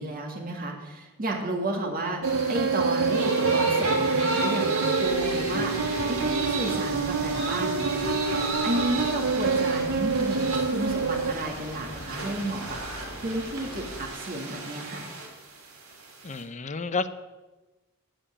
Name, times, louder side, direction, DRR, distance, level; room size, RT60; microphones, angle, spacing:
voice 1, 0.0-2.2 2.5-8.2 8.6-12.8 13.2-15.1, right 1 dB, 40° right, 0 dB, 2.1 m, -32 dB
sound 1, 2.2-11.3, right 4 dB, 60° right, 0.6 m, -27 dB
sound 2, 2.2-16.4, right 2 dB, 75° right, 3.4 m, -33 dB
sound 3, 5.0-14.1, left 1 dB, 60° left, 1.9 m, -43 dB
voice 2, 16.2-17.1, left 4 dB, 35° left, 11 dB, 0.6 m, -30 dB
9.1 x 8.6 x 8.9 m, 1.2 s
head